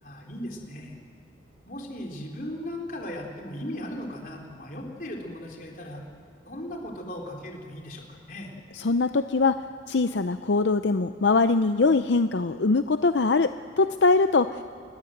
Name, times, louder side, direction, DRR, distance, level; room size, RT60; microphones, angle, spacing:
voice 1, 0.0-1.0 1.7-6.0 6.5-8.5, left 1 dB, 50° left, 1 dB, 3.9 m, -37 dB
voice 2, 8.7-14.6, left 3 dB, 80° left, 10 dB, 0.6 m, -22 dB
27.0 x 21.5 x 7.9 m, 2.4 s
head